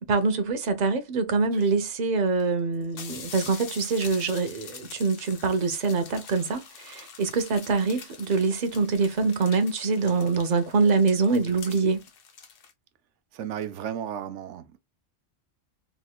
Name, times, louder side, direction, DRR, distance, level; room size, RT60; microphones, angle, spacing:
voice 1, 0.1-12.0, right 4 dB, 50° right, 0.6 m, -24 dB
sound 1, 1.6-1.7 2.4-2.5 2.7-12.7, left 6 dB, 60° left, 0.8 m, -45 dB
voice 2, 13.3-14.8, right 9 dB, 90° right, 0.9 m, -34 dB
3.1 x 2.9 x 2.3 m
omnidirectional pair, 1.2 m